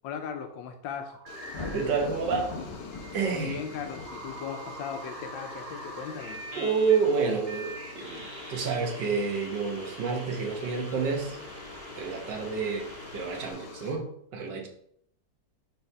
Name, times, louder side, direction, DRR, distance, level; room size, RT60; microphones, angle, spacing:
voice 1, 0.0-1.2 3.3-6.4, left 7 dB, 85° left, 6 dB, 1.3 m, -38 dB
sound 1, 1.1-2.0 2.9-13.5, right 2 dB, 35° right, 1.7 m, -44 dB
sound 2, 1.3-13.9, left 4 dB, 65° left, 1.4 m, -46 dB
Thunder, 1.4-4.7, left 3 dB, 40° left, 0.4 m, -40 dB
voice 2, 1.7-2.5 3.1-3.6 6.6-11.4 12.0-14.1 14.3-14.7, right 5 dB, 70° right, 2 dB, 1.7 m, -29 dB
4.6 x 4.2 x 5.3 m, 0.70 s
omnidirectional pair, 2.0 m